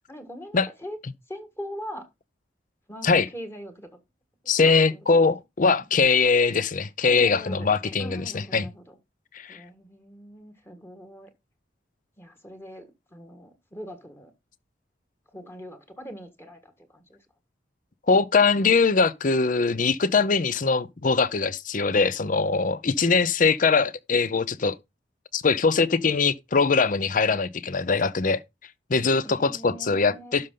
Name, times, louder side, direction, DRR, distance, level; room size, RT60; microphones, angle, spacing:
voice 1, 0.1-1.0 1.3-2.1 2.9-3.9 4.6-5.0 7.1-9.0 9.5-11.3 12.2-14.3 15.3-17.2 29.2-30.4, equal, 15° left, 1.5 m, -41 dB
voice 2, 4.5-8.7 9.3-9.6 18.1-24.8 25.3-28.4 28.9-30.5, left 4 dB, 45° left, 0.6 m, -22 dB
12.0 x 5.5 x 3.8 m
head